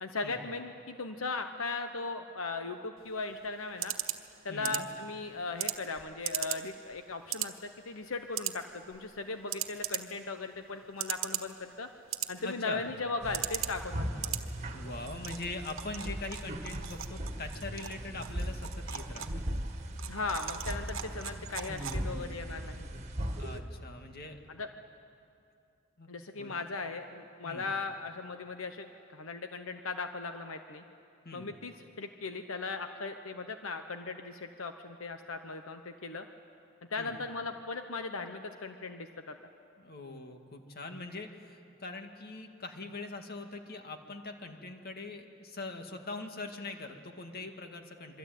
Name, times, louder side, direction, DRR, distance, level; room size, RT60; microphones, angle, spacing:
voice 1, 0.0-3.9 4.4-11.9 12.3-14.4 20.1-22.9 24.5-24.7 26.1-30.8 31.3-36.3 36.9-39.4, left 3 dB, 80° left, 7 dB, 1.1 m, -38 dB
sound 1, 3.0-22.3, right 11 dB, 70° right, 1.4 m, -40 dB
voice 2, 4.5-4.9 12.4-12.9 14.7-19.4 23.4-24.4 26.0-26.6 27.4-27.7 31.2-31.5 37.0-37.2 39.8-48.2, left 2 dB, 50° left, 5 dB, 2.1 m, -42 dB
sound 2, 13.2-23.6, right 1 dB, 35° right, 2.0 m, -38 dB
26.5 x 23.5 x 9.3 m, 2.6 s
head